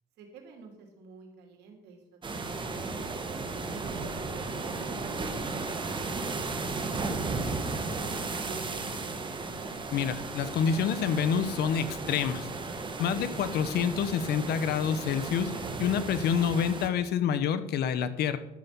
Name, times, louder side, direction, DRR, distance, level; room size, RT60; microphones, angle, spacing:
voice 1, 0.2-3.2 3.7-4.2 4.5-7.3 7.6-8.8, right 3 dB, 80° right, 2 dB, 3.0 m, -49 dB
sound 1, 2.2-16.9, right 3 dB, 30° right, 1.6 m, -35 dB
voice 2, 9.9-12.5 13.0-15.5 15.8-18.4, left 7 dB, 70° left, 12 dB, 1.1 m, -27 dB
11.5 x 7.2 x 6.0 m, 0.92 s
cardioid pair, 110°, 17 cm